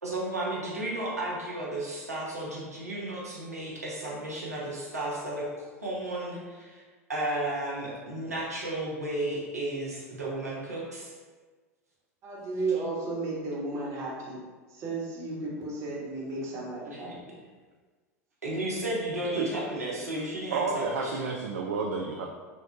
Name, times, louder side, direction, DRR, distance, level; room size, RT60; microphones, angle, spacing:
voice 1, 0.0-6.8 7.1-11.1 16.9-17.2 18.4-21.3, right 1 dB, 85° right, -6 dB, 0.9 m, -33 dB
voice 2, 12.2-14.4 14.7-17.4, right 3 dB, 35° right, -5 dB, 1.1 m, -34 dB
voice 3, 20.5-22.2, right 4 dB, 65° right, 1 dB, 0.3 m, -30 dB
4.5 x 2.3 x 2.7 m, 1.4 s
figure-of-eight pair, 85°, 8 cm